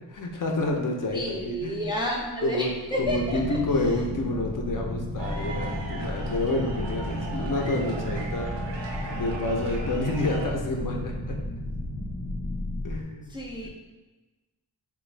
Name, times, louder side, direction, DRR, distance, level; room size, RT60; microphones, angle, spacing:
voice 1, 0.1-1.9 2.4-2.7 3.0-8.5 9.2-11.4 12.8-13.3 13.6-13.7, left 2 dB, 50° left, 1 dB, 0.5 m, -29 dB
voice 2, 1.1-4.0 13.3-13.7, equal, 10° right, -2 dB, 0.3 m, -31 dB
sound 1, 3.0-13.0, left 1 dB, 20° left, 0.8 m, -33 dB
sound 2, 5.2-10.5, right 2 dB, 85° right, 0.6 m, -37 dB
3.3 x 2.2 x 3.2 m, 1.1 s
wide cardioid pair, 110°, 44 cm